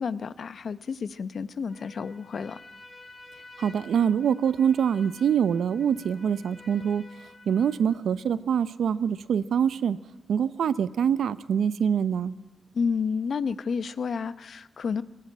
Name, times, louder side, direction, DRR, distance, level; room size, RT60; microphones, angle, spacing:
voice 1, 0.0-2.6 12.7-15.0, left 5 dB, 70° left, 15 dB, 0.8 m, -30 dB
Trumpet, 1.7-8.1, left 2 dB, 40° left, 3.7 m, -50 dB
voice 2, 3.6-7.1 7.5-10.0 10.3-12.3, right 8 dB, 85° right, 16 dB, 0.7 m, -24 dB
18.5 x 17.5 x 8.9 m, 1.1 s
cardioid pair, 65°, 0 cm